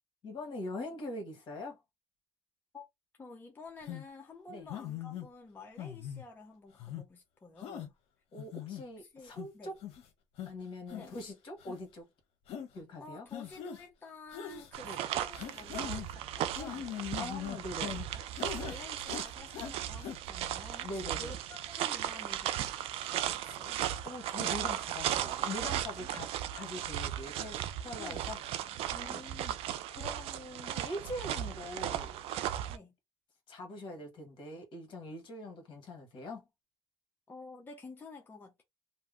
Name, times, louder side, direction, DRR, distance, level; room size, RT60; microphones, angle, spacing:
voice 1, 0.2-1.8 4.5-4.7 8.3-9.7 10.5-12.1 12.7-13.3 14.8-15.0 17.2-18.0 20.8-21.4 24.0-28.4 28.9-29.5 29.9-32.1 33.5-36.5, left 1 dB, 55° left, 1.2 m, -43 dB
voice 2, 3.2-7.9 9.0-9.7 10.9-11.1 13.0-16.9 18.1-18.2 18.6-22.7 23.0-23.8 26.0-26.1 28.0-28.3 29.0-29.3 32.7-32.9 37.3-38.6, left 3 dB, 20° left, 0.6 m, -50 dB
sound 1, 3.9-4.0 4.7-5.3 5.8-6.2 6.8-7.0 7.6-7.9 8.4-8.8 9.4-9.5 9.8-10.0 10.4-10.5 10.9-11.2 11.6-11.8 12.5-12.7 13.3-13.8 14.3-14.7 15.3-16.1 16.5-18.1 18.4-18.8 19.1-19.7 20.0-20.2, left 9 dB, 75° left, 0.7 m, -41 dB
sound 2, 14.7-32.8, right 11 dB, 70° right, 0.4 m, -36 dB
2.7 x 2.0 x 3.6 m
cardioid pair, 120°, 10 cm